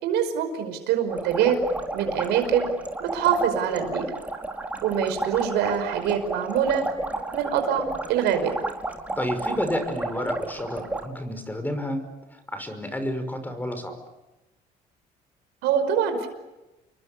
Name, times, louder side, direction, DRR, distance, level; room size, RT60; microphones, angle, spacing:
voice 1, 0.0-1.6 1.9-2.7 3.0-4.1 4.8-6.8 7.3-8.5 15.6-16.3, right 8 dB, 90° right, 7 dB, 5.4 m, -24 dB
sound 1, 1.1-11.1, right 2 dB, 10° right, 4.6 m, -32 dB
voice 2, 9.2-12.1 12.3-14.0, left 1 dB, 10° left, 9 dB, 5.6 m, -30 dB
29.5 x 23.0 x 8.5 m, 1.0 s
cardioid pair, 110°, 17 cm